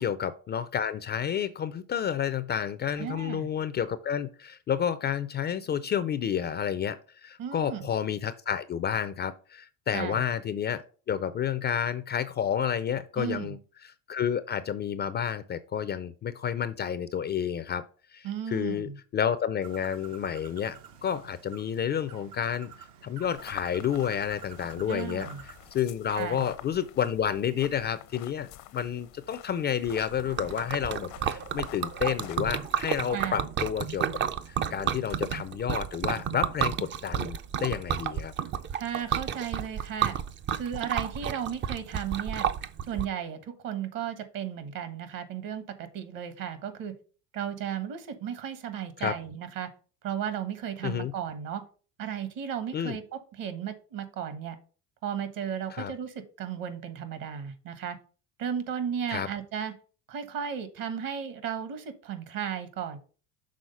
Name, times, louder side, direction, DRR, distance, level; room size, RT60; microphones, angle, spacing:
voice 1, 0.0-13.6 13.8-17.9 18.1-25.3 25.7-34.1 34.5-38.3 49.0-49.2 50.8-51.1 52.7-53.0 55.7-55.9 59.1-59.3, left 8 dB, 30° left, 13 dB, 0.4 m, -30 dB
voice 2, 3.0-3.5 7.4-7.9 9.9-10.2 13.2-13.5 18.2-19.0 24.9-25.4 26.1-26.4 33.1-33.4 38.7-40.2 40.5-42.5 42.8-46.9 47.3-49.7 50.0-51.6 52.0-54.6 55.0-58.0 58.4-59.7 60.1-63.0, right 8 dB, 55° right, 11 dB, 1.4 m, -35 dB
Bird, 19.6-25.7, right 8 dB, 75° right, 1.0 m, -49 dB
sound 1, 23.2-33.0, left 15 dB, 70° left, 0.7 m, -48 dB
Liquid, 29.9-43.0, right 8 dB, 30° right, 0.4 m, -31 dB
6.4 x 3.7 x 5.4 m, 0.38 s
supercardioid pair, 100°, 38 cm